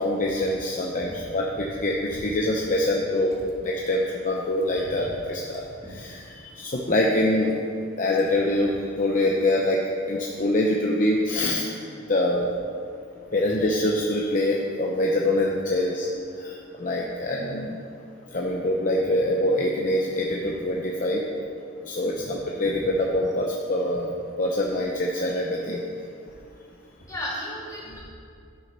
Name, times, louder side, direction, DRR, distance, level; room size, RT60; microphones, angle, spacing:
voice 1, 0.0-3.3 3.6-7.6 8.0-9.8 10.1-11.7 12.1-12.5 13.3-16.1 16.4-17.8 18.3-21.2 21.8-24.1 24.4-25.8 27.9-28.0, left 1 dB, 40° left, -2 dB, 0.7 m, -25 dB
voice 2, 27.1-28.0, equal, 15° left, -7 dB, 2.6 m, -34 dB
11.5 x 6.3 x 5.4 m, 2.4 s
head